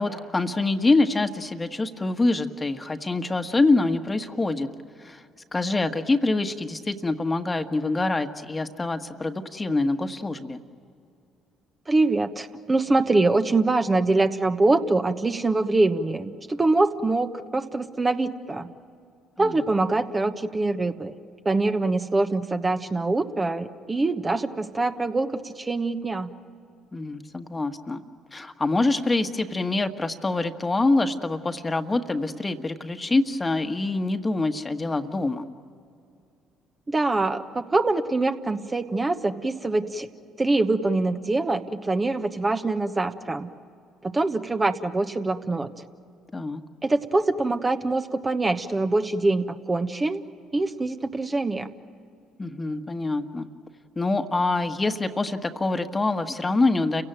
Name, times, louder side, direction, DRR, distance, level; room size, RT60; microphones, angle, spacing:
voice 1, 0.0-4.7 5.0-5.2 5.5-10.6 19.4-19.6 26.9-28.0 28.3-35.4 46.3-46.6 52.4-53.5 53.9-57.0, left 2 dB, 25° left, 8 dB, 1.5 m, -25 dB
voice 2, 11.9-18.7 19.4-21.1 21.4-26.3 36.9-40.1 40.4-43.5 44.0-45.7 46.8-50.2 50.5-51.7, right 2 dB, 25° right, 7 dB, 1.2 m, -24 dB
30.0 x 17.0 x 9.1 m, 2.4 s
hypercardioid pair, 55°, 0 cm